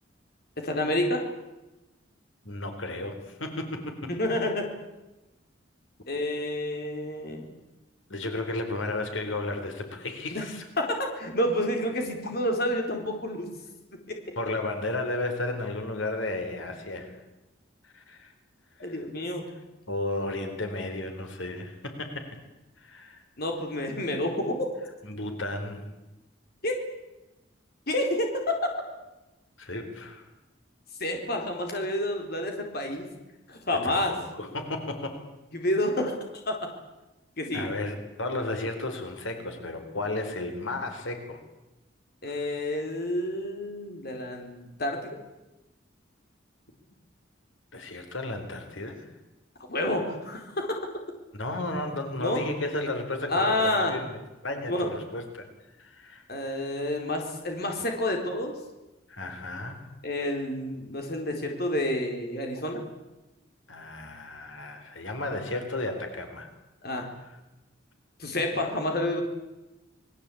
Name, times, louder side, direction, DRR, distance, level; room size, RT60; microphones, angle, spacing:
voice 1, 0.6-1.3 4.2-4.7 6.1-7.5 10.3-10.5 10.8-13.5 14.1-14.2 18.8-19.4 23.4-24.7 26.6-26.8 27.9-28.7 31.0-33.1 33.5-34.1 35.5-36.1 36.5-36.7 37.4-37.7 42.2-45.2 49.7-50.9 52.2-52.4 53.3-53.9 54.7-54.9 56.3-58.6 60.0-62.8 66.8-67.1 68.2-69.2, left 1 dB, 55° left, 3 dB, 4.2 m, -29 dB
voice 2, 2.4-4.1 8.1-10.6 14.4-17.2 17.8-18.3 18.8-19.0 19.9-22.3 22.8-23.2 25.0-25.9 29.6-30.2 33.7-35.2 37.5-41.4 42.3-42.4 47.7-49.1 51.3-54.2 54.4-55.5 55.8-56.6 59.1-59.9 63.7-66.5, left 2 dB, 85° left, 5 dB, 4.1 m, -33 dB
27.5 x 21.0 x 8.6 m, 1.0 s
head